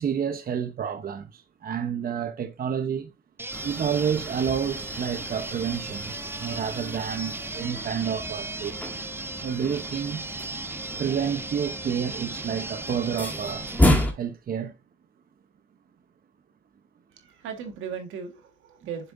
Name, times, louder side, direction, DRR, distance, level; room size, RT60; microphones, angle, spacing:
voice 1, 0.0-3.1 3.6-9.0 9.4-10.2 11.0-13.7 14.1-14.7, right 7 dB, 50° right, 0.9 m, -29 dB
sound 1, 3.4-14.1, right 3 dB, 10° right, 0.4 m, -37 dB
sound 2, 3.5-14.1, left 1 dB, 10° left, 2.2 m, -31 dB
voice 2, 17.1-19.1, right 7 dB, 85° right, 1.7 m, -37 dB
7.0 x 6.8 x 2.7 m
cardioid pair, 90°, 20 cm